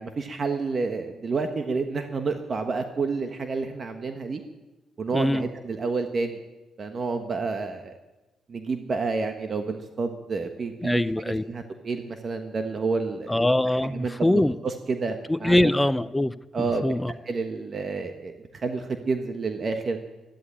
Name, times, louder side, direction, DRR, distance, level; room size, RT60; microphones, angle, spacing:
voice 1, 0.0-4.4 5.0-6.4 6.8-7.9 8.5-13.3 13.8-15.7 16.5-16.9 17.3-20.0, right 4 dB, 45° right, 6 dB, 1.3 m, -29 dB
voice 2, 5.1-5.4 10.8-11.4 13.3-14.5 15.3-17.1, left 1 dB, 10° left, 13 dB, 0.6 m, -23 dB
13.0 x 11.0 x 8.7 m, 1.1 s
supercardioid pair, 70°, 0 cm